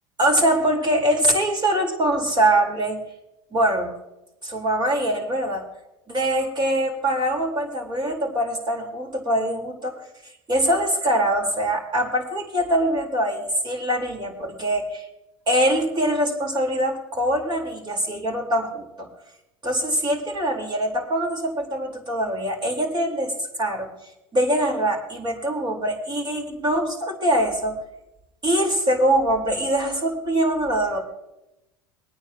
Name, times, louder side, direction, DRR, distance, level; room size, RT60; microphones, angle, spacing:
voice 1, 0.2-3.0 3.5-3.9 4.4-5.6 6.1-10.0 10.5-15.0 15.5-19.1 19.6-23.3 23.6-23.9 24.3-27.8 28.4-31.0, right 1 dB, 30° right, 1 dB, 4.3 m, -23 dB
24.0 x 9.5 x 3.0 m, 0.93 s
hypercardioid pair, 85°, 16 cm